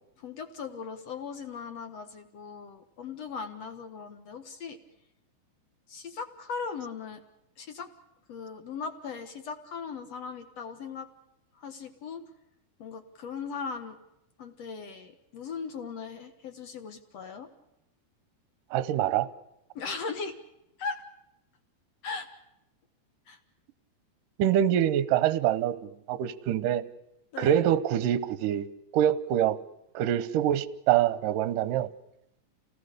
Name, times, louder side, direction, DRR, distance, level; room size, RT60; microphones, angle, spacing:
voice 1, 0.2-4.8 5.9-7.2 7.6-7.9 8.3-11.1 11.5-12.3 12.8-14.0 14.4-17.5 19.7-20.4 20.8-21.0 22.0-22.3 23.3-23.4 27.3-27.6, left 5 dB, 55° left, 8 dB, 1.8 m, -38 dB
voice 2, 18.7-19.3 24.4-26.8 27.4-28.7 28.9-29.6 29.9-31.9, right 11 dB, 70° right, 16 dB, 2.2 m, -25 dB
29.0 x 18.5 x 6.7 m, 0.86 s
omnidirectional pair, 4.8 m